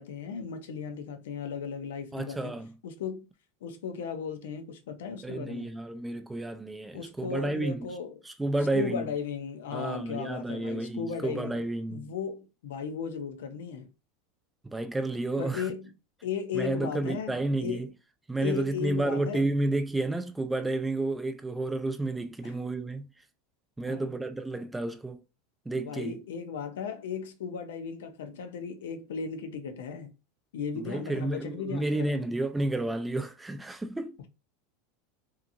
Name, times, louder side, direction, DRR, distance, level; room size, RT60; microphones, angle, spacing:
voice 1, 0.0-2.6 2.8-3.3 3.6-5.7 6.9-8.2 8.7-11.6 11.9-13.9 15.4-15.9 16.2-17.3 17.6-17.9 18.4-19.4 22.4-22.6 23.8-24.2 25.7-30.1 30.5-32.3, left 6 dB, 85° left, 0.5 m, -36 dB
voice 2, 2.1-2.8 5.2-7.9 8.2-9.1 9.7-12.1 14.6-15.7 16.5-17.9 18.3-23.1 23.8-25.2 25.7-26.2 30.7-34.3, right 2 dB, 10° right, 0.3 m, -31 dB
2.8 x 2.5 x 2.5 m
supercardioid pair, 120°, 0 cm